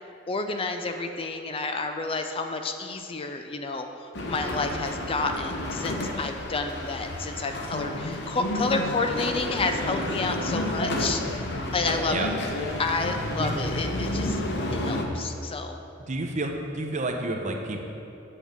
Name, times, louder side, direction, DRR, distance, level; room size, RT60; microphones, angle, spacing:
voice 1, 0.3-11.2 11.7-12.3 12.8-14.4 14.7-15.8, left 3 dB, 30° left, 6 dB, 0.5 m, -30 dB
sound 1, 4.1-15.0, left 1 dB, 60° left, 0.9 m, -30 dB
voice 2, 16.1-17.8, right 2 dB, 40° right, 2 dB, 0.9 m, -30 dB
8.4 x 5.3 x 7.3 m, 2.8 s
head